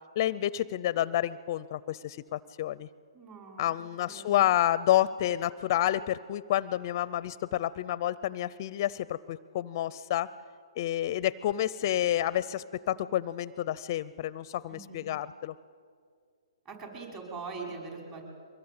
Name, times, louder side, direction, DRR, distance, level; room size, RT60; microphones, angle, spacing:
voice 1, 0.2-2.9 3.6-10.3 10.8-15.5, left 12 dB, 40° left, 18 dB, 0.5 m, -29 dB
voice 2, 3.1-3.7 4.0-4.5 14.7-15.1 16.7-18.2, right 4 dB, 25° right, 0 dB, 5.6 m, -42 dB
23.5 x 20.5 x 8.8 m, 2.2 s
hypercardioid pair, 145°, 3 cm